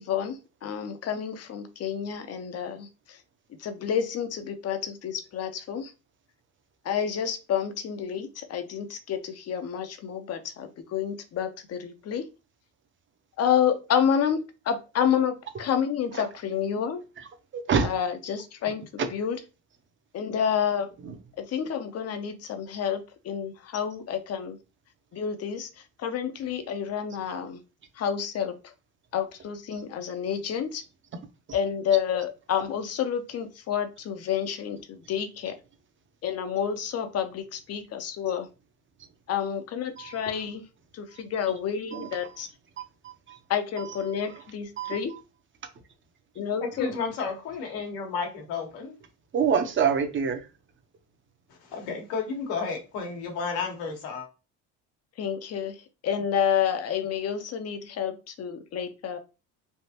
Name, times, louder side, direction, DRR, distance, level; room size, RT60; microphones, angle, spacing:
voice 1, 0.0-3.2 3.6-5.9 6.8-12.2 13.4-14.4 14.6-17.0 17.8-18.8 19.1-19.4 20.1-20.9 21.4-24.6 25.1-25.7 26.0-27.6 28.0-28.7 29.1-30.8 31.5-35.5 36.2-38.5 39.3-40.6 40.9-42.5 43.5-45.1 46.4-46.9 55.2-55.8 56.0-59.2, left 8 dB, 40° left, 9 dB, 0.7 m, -29 dB
voice 2, 17.5-17.9 19.0-19.1 21.0-21.1 40.0-40.1 41.9-42.1 43.0-43.4 44.8-45.0 49.3-50.5, right 6 dB, 30° right, 6 dB, 0.7 m, -26 dB
voice 3, 46.6-48.9 51.7-54.3, left 5 dB, 80° left, 3 dB, 1.3 m, -32 dB
3.4 x 2.4 x 2.8 m, 0.30 s
supercardioid pair, 95°, 37 cm